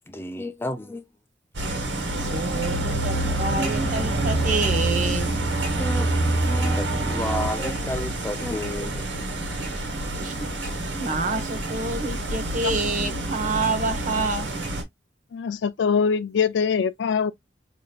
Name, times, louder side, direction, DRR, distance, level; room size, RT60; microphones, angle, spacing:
voice 1, 0.1-1.1 5.8-9.1, left 1 dB, 15° left, 0.4 m, -32 dB
sound 1, 1.5-14.8, right 2 dB, 85° right, 1.3 m, -27 dB
voice 2, 2.2-5.3 10.1-14.5, right 3 dB, 45° right, 0.9 m, -28 dB
voice 3, 15.3-17.3, left 6 dB, 75° left, 0.4 m, -23 dB
5.1 x 2.7 x 2.3 m
head